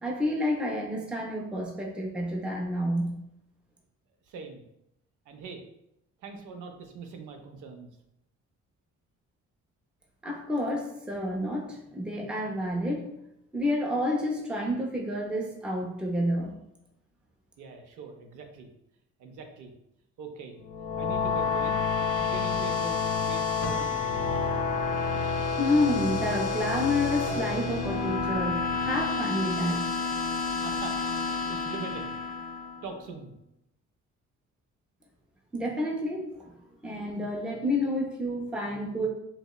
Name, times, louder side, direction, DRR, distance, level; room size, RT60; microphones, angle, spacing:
voice 1, 0.0-3.2 10.2-13.1 13.5-16.5 25.6-29.9 35.5-36.5 36.8-39.1, left 1 dB, 5° right, -1 dB, 0.4 m, -29 dB
voice 2, 4.3-4.6 5.3-5.6 6.2-7.9 17.6-18.7 19.2-19.7 20.2-20.6 21.0-21.8 22.2-24.1 30.6-32.2 32.8-33.3, right 4 dB, 80° right, 4 dB, 0.5 m, -42 dB
sound 1, 20.6-33.0, left 5 dB, 85° left, 0.6 m, -29 dB
2.9 x 2.0 x 2.2 m, 0.82 s
cardioid pair, 90°, 30 cm